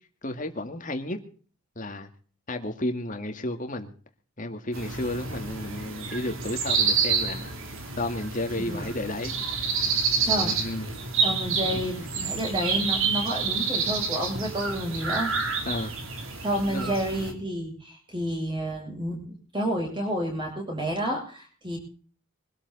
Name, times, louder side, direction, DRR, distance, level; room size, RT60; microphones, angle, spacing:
voice 1, 0.2-1.2 1.8-2.1 2.5-3.9 4.4-7.5 8.0-9.4 9.8-11.0 11.7-11.8 15.7-15.9 16.6-16.9, left 1 dB, 35° left, 6 dB, 2.2 m, -32 dB
sound 1, 4.7-17.3, right 5 dB, 70° right, 3.4 m, -28 dB
voice 2, 11.2-15.7 16.4-21.8, equal, 20° right, 1 dB, 8.0 m, -30 dB
23.5 x 13.0 x 4.2 m, 0.42 s
head